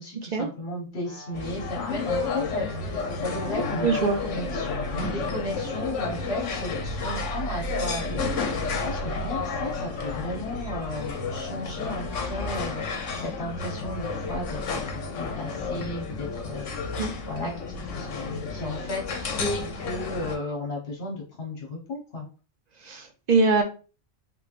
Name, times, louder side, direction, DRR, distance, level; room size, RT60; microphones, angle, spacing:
voice 1, 0.0-17.0 17.3-17.5 17.8-22.3, left 1 dB, 60° left, -1 dB, 1.2 m, -35 dB
sound 1, 1.0-6.6, left 1 dB, 20° right, 1.8 m, -47 dB
sound 2, 1.3-20.4, left 3 dB, 80° left, 1.0 m, -31 dB
voice 2, 3.8-4.2 17.0-17.1 22.8-23.6, right 4 dB, 50° right, 5 dB, 0.5 m, -22 dB
3.6 x 3.1 x 2.4 m, 0.34 s
omnidirectional pair, 1.2 m